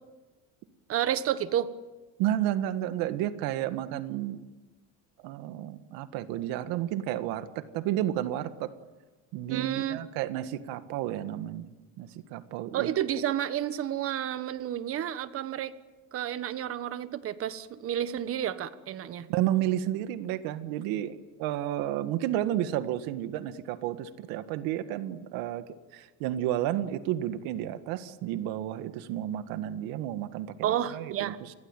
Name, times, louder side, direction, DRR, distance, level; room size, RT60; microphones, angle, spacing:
voice 1, 0.9-1.7 9.5-10.0 12.7-15.7 16.1-19.3 30.6-31.4, right 11 dB, 40° right, 12 dB, 1.4 m, -30 dB
voice 2, 2.2-4.4 5.2-8.7 9.3-11.7 12.0-12.9 19.3-25.7 25.9-31.5, right 12 dB, 85° right, 10 dB, 1.8 m, -31 dB
29.0 x 22.0 x 9.1 m, 1.2 s
cardioid pair, 165°, 35 cm